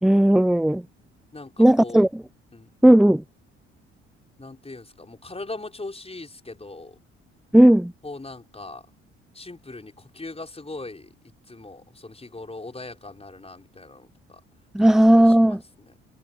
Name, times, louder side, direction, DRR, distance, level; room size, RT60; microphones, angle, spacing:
voice 1, 0.0-0.8 1.6-2.2 2.8-3.2 7.5-7.9 14.7-15.6, right 1 dB, ahead, 0.5 m, -15 dB
voice 2, 1.3-2.0 2.5-2.7 4.4-7.0 8.0-8.9 9.3-11.1 11.5-14.4 14.8-15.9, left 2 dB, 20° left, 5.0 m, -40 dB
hypercardioid pair, 50°, 34 cm